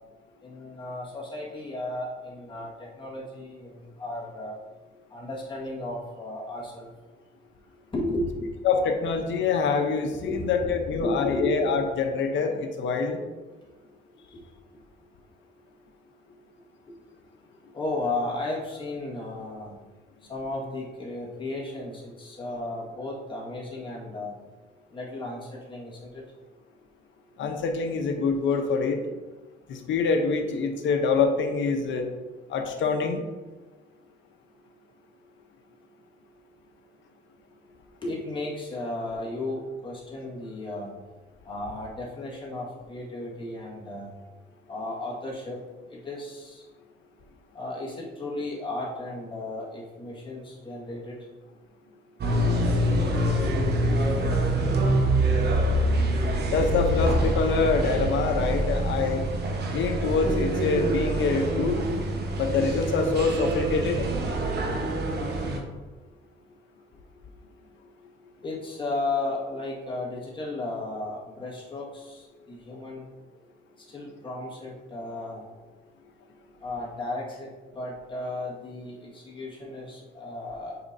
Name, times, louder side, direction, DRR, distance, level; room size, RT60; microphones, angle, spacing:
voice 1, 0.4-4.6 5.1-6.9 7.9-8.5 10.2-10.7 11.0-11.5 17.7-19.8 20.3-24.3 24.9-26.2 38.0-40.9 41.4-44.1 44.7-45.6 45.9-46.7 47.5-51.2 68.4-73.0 73.8-75.4 76.6-80.8, left 2 dB, 25° left, -4 dB, 1.8 m, -34 dB
voice 2, 8.6-13.2 27.4-29.0 29.7-32.1 32.5-33.2 56.5-59.2 59.7-61.9 62.4-64.1, left 5 dB, 70° left, 5 dB, 0.9 m, -25 dB
sound 1, 52.2-65.6, right 1 dB, 55° right, 1.2 m, -25 dB
6.9 x 5.0 x 2.7 m, 1.3 s
cardioid pair, 90°, 20 cm